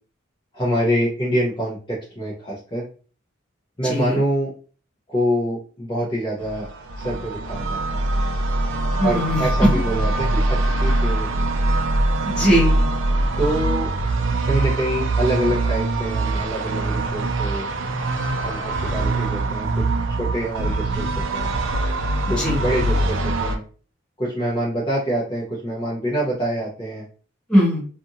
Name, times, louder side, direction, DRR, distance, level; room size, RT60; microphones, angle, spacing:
voice 1, 0.5-2.9 3.8-4.5 5.1-6.7 7.0-8.1 9.0-11.5 13.4-14.0 14.4-17.7 18.4-21.5 22.3-23.6 24.2-27.0, right 1 dB, 20° left, -6 dB, 0.7 m, -26 dB
voice 2, 3.8-4.2 9.0-9.5 9.7-9.8 12.2-12.9 22.3-22.6 27.5-27.9, equal, 5° left, -6 dB, 1.0 m, -20 dB
sound 1, 6.4-23.6, right 2 dB, 70° right, 0.4 m, -23 dB
2.6 x 2.5 x 2.7 m, 0.40 s
head